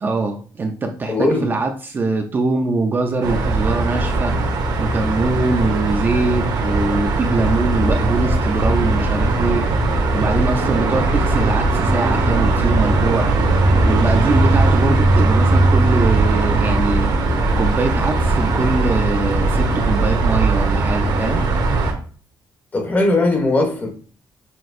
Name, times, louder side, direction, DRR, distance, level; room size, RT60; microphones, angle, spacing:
voice 1, 0.0-4.4 4.8-9.7 10.1-13.3 13.8-17.1 17.6-21.4, right 3 dB, 25° right, 0.4 m, -22 dB
voice 2, 1.1-1.5 10.7-10.9 22.7-23.9, left 2 dB, 20° left, 0.7 m, -19 dB
sound 1, 3.2-21.9, right 2 dB, 55° right, 0.9 m, -18 dB
6.0 x 2.7 x 2.5 m
cardioid pair, 155°, 8 cm